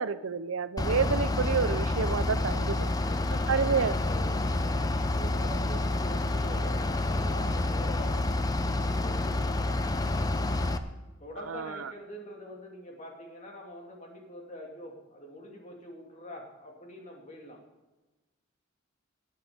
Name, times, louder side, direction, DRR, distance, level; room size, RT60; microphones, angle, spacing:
voice 1, 0.0-2.9 3.5-3.9 11.5-11.9, right 6 dB, 85° right, 14 dB, 0.6 m, -29 dB
Bus / Idling, 0.8-10.8, left 2 dB, 20° left, 0.6 m, -28 dB
voice 2, 3.0-10.0 11.2-17.6, equal, 35° left, 0 dB, 2.6 m, -45 dB
17.0 x 9.3 x 5.1 m, 1.1 s
head